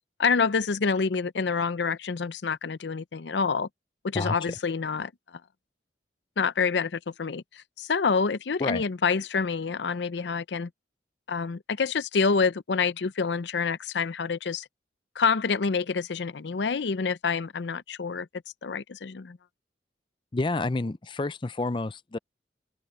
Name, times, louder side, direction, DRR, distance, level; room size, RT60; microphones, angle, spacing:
voice 1, 0.2-3.7 4.0-5.1 6.4-10.7 11.3-14.7 15.2-18.3 18.6-19.4, left 5 dB, 75° left, 0.6 m, -27 dB
voice 2, 4.1-4.5 8.6-8.8 20.3-22.2, left 2 dB, 25° left, 0.4 m, -29 dB
open air
head